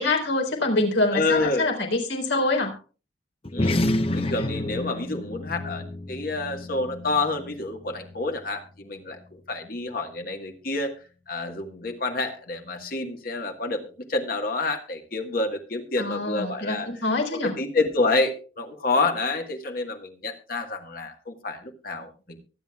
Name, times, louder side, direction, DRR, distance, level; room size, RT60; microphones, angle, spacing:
voice 1, 0.0-2.8 16.0-17.5, left 2 dB, 80° left, 2 dB, 4.2 m, -25 dB
voice 2, 1.1-1.7 3.5-3.9 4.1-10.9 11.3-16.9 17.3-22.4, left 3 dB, 50° left, 4 dB, 1.5 m, -28 dB
sound 1, 3.4-8.2, left 1 dB, 30° left, 0.9 m, -29 dB
23.5 x 9.1 x 2.3 m, 0.35 s
head